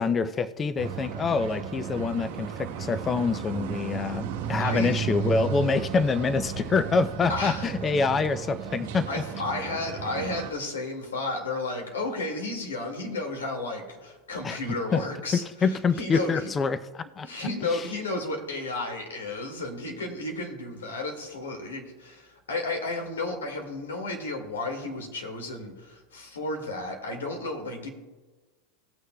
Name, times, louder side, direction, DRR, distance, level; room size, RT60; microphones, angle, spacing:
voice 1, 0.0-9.1 14.4-14.6 14.9-15.0 15.6-17.3 17.7-17.9, left 4 dB, 25° left, 13 dB, 0.5 m, -26 dB
sound 1, 0.8-10.5, right 8 dB, 70° right, 0.9 m, -34 dB
voice 2, 4.6-4.9 7.3-7.7 9.1-16.5 17.2-27.9, left 2 dB, 90° left, 2 dB, 1.9 m, -33 dB
18.5 x 6.4 x 2.2 m, 1.3 s
hypercardioid pair, 95°, 0 cm